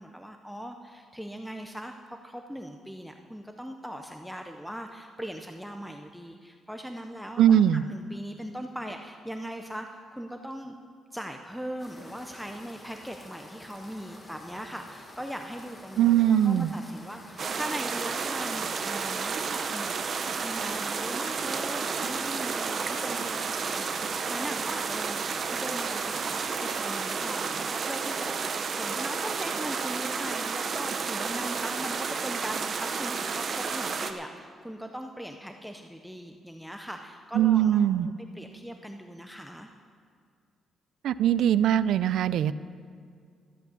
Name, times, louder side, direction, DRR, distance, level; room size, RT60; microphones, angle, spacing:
voice 1, 0.0-10.8 11.1-20.2 20.4-25.2 25.5-26.4 26.8-37.8 38.3-39.7, equal, ahead, 4 dB, 0.5 m, -40 dB
voice 2, 7.4-7.8 16.0-16.7 37.3-38.1 41.0-42.5, right 10 dB, 75° right, 16 dB, 0.4 m, -21 dB
sound 1, 11.8-27.1, left 1 dB, 15° left, 1.5 m, -49 dB
sound 2, 17.4-34.1, right 5 dB, 40° right, 0.7 m, -31 dB
13.0 x 8.3 x 6.9 m, 2.2 s
cardioid pair, 155°, 0 cm